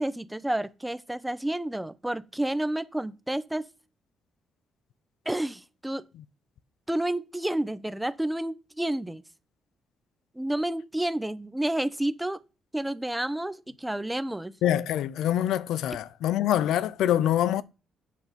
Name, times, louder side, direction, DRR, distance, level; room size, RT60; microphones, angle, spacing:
voice 1, 0.0-3.7 5.3-6.0 6.9-9.2 10.3-12.4 12.7-14.5, right 1 dB, 5° right, 0.7 m, -30 dB
voice 2, 14.6-17.6, left 11 dB, 80° left, 0.5 m, -25 dB
8.4 x 6.1 x 5.2 m
cardioid pair, 90°, 0 cm